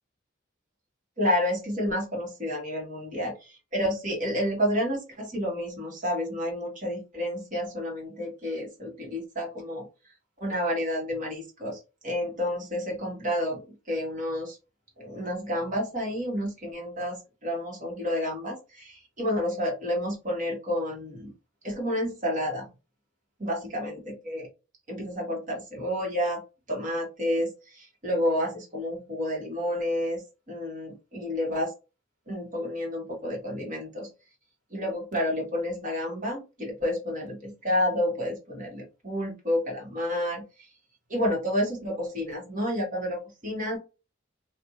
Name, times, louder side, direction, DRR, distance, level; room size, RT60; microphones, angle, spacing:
voice 1, 1.2-9.8 10.4-14.6 15.0-21.3 21.6-22.7 23.4-24.5 24.9-26.4 26.7-31.7 32.3-34.1 34.7-40.4 41.1-43.8, equal, 45° right, -1 dB, 1.5 m, -30 dB
3.3 x 2.6 x 2.7 m, 0.29 s
head